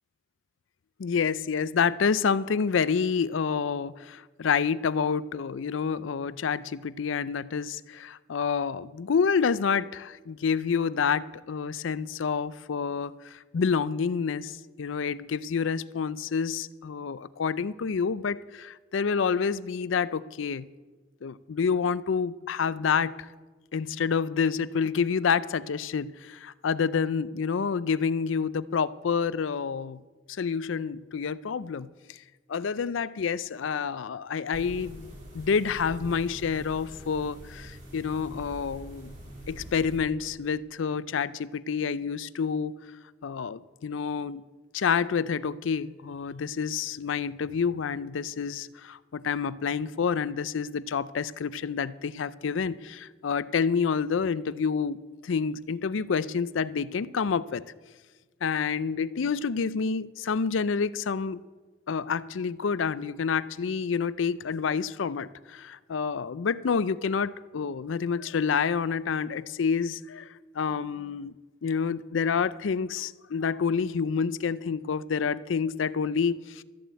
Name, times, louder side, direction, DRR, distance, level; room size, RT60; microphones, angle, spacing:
voice 1, 1.0-20.7 21.2-23.3 23.7-30.0 30.3-32.2 32.5-39.1 39.5-42.7 43.2-44.4 44.7-57.6 58.4-61.4 61.9-71.3 71.6-76.6, left 6 dB, 90° left, 0.5 m, -28 dB
sound 1, 34.5-40.0, right 1 dB, 40° right, 3.8 m, -44 dB
13.5 x 7.6 x 8.2 m
head